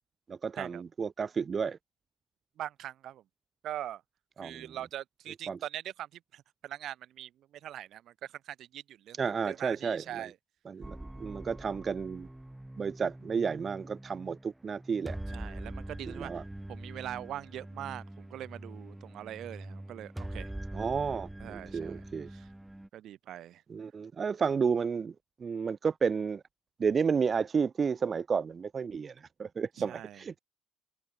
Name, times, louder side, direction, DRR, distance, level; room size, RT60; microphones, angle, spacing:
voice 1, 0.3-1.8 4.4-4.7 5.5-5.6 9.2-10.3 10.7-12.3 12.8-15.2 16.1-16.4 20.7-22.3 23.7-25.1 25.4-26.4 26.8-30.4, right 6 dB, 35° right, 0.5 m, -32 dB
voice 2, 2.6-3.2 3.6-4.0 4.4-9.2 9.5-10.3 15.3-16.4 16.7-20.5 21.4-22.0 22.3-22.5 22.9-23.6 29.8-30.2, right 12 dB, 60° right, 2.5 m, -42 dB
sound 1, 10.8-22.9, right 1 dB, 5° right, 1.2 m, -44 dB
supercardioid pair, 85°, 0 cm